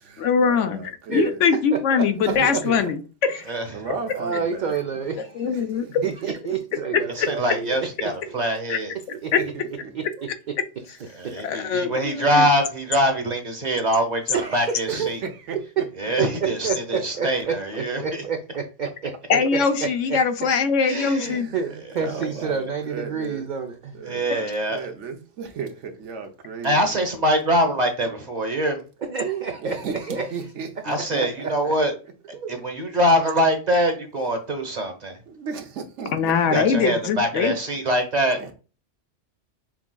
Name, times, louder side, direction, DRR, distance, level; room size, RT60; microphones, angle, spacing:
voice 1, 0.2-3.4 3.9-4.0 5.4-5.9 6.9-7.3 8.7-8.8 11.4-12.5 19.3-21.5 36.1-37.5, left 6 dB, 75° left, 1.0 m, -22 dB
voice 2, 1.7-2.6 4.0-5.5 6.0-8.1 9.1-9.3 9.9-10.5 11.2-11.4 12.1-12.3 14.3-15.1 15.5-15.9 16.2-20.2 20.8-20.9 21.5-24.2 29.1-30.8 31.1-31.7 32.4-32.5, right 6 dB, 55° right, 0.5 m, -29 dB
voice 3, 2.4-2.8 3.7-4.6 22.0-22.2 22.9-23.4 24.1-26.7 29.8-29.9 30.3-30.7 35.3-36.6, right 5 dB, 75° right, 1.1 m, -34 dB
voice 4, 7.2-8.9 11.2-15.2 16.0-18.2 20.9-21.5 24.0-24.9 26.6-28.8 30.8-31.9 32.5-35.2 36.5-38.4, equal, 35° right, 1.1 m, -23 dB
5.9 x 3.5 x 2.2 m
omnidirectional pair, 1.3 m